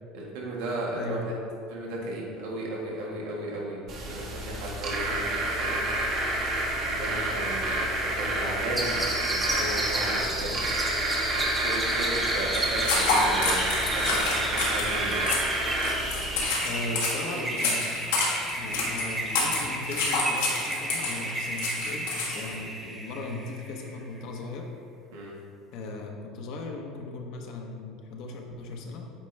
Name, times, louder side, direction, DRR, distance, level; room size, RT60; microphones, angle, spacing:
voice 1, 0.1-1.3 1.7-5.8 6.9-7.8 8.1-10.6 11.6-15.2 17.3-17.5 25.1-25.3, right 1 dB, 80° right, -3 dB, 1.6 m, -35 dB
voice 2, 0.9-1.3 16.6-18.0 18.5-24.7 25.7-29.1, left 3 dB, 65° left, 2 dB, 1.0 m, -37 dB
sound 1, 3.9-16.4, right 2 dB, 55° right, 1.6 m, -29 dB
sound 2, 8.8-24.0, right 1 dB, 15° right, 1.3 m, -33 dB
sound 3, 12.5-22.5, left 3 dB, 90° left, 1.6 m, -29 dB
8.8 x 4.2 x 3.4 m, 2.4 s
supercardioid pair, 95°, 0 cm